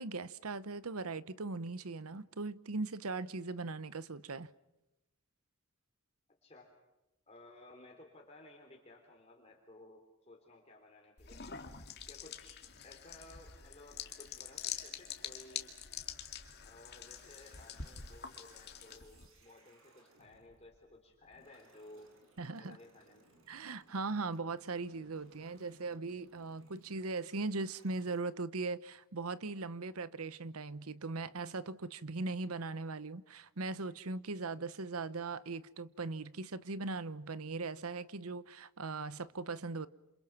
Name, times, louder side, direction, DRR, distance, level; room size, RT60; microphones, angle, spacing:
voice 1, 0.0-4.5 22.4-22.8 23.5-39.9, right 3 dB, 85° right, 1.0 m, -39 dB
voice 2, 6.4-6.7 7.3-11.4 12.1-15.8 16.6-22.1 22.4-23.3, left 2 dB, 30° left, 3.3 m, -57 dB
sound 1, 11.2-19.3, left 8 dB, 50° left, 2.3 m, -46 dB
sound 2, 16.9-28.2, right 2 dB, 65° right, 5.9 m, -67 dB
28.5 x 27.5 x 6.0 m
head